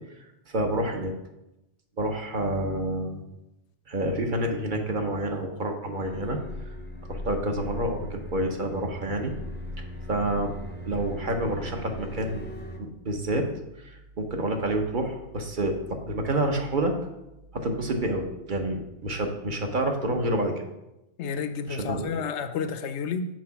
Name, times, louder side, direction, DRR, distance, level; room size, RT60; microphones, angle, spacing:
voice 1, 0.5-1.1 2.0-3.2 3.9-6.7 7.1-9.3 9.8-10.5 10.9-12.4 12.8-13.5 13.8-16.9 17.5-20.6 21.7-22.2, right 1 dB, 45° right, 3 dB, 1.0 m, -28 dB
sound 1, 6.0-12.8, equal, 15° left, 0.4 m, -38 dB
voice 2, 21.2-23.3, left 6 dB, 75° left, 9 dB, 0.9 m, -31 dB
6.1 x 4.6 x 5.8 m, 0.91 s
omnidirectional pair, 1.2 m